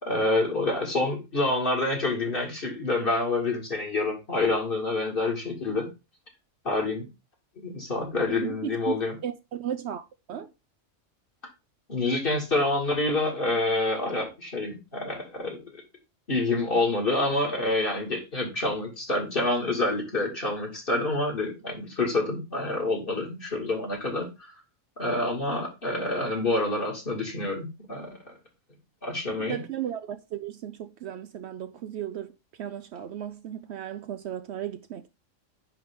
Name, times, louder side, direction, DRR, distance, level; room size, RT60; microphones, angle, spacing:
voice 1, 0.0-5.9 6.6-7.1 7.6-9.1 11.9-15.8 16.3-24.5 25.0-28.1 29.0-29.6, left 2 dB, 45° left, 2.6 m, -27 dB
voice 2, 8.3-8.9 9.2-10.5 29.4-32.3 32.6-35.1, right 10 dB, 70° right, 0.8 m, -35 dB
10.0 x 3.7 x 3.6 m
omnidirectional pair, 1.3 m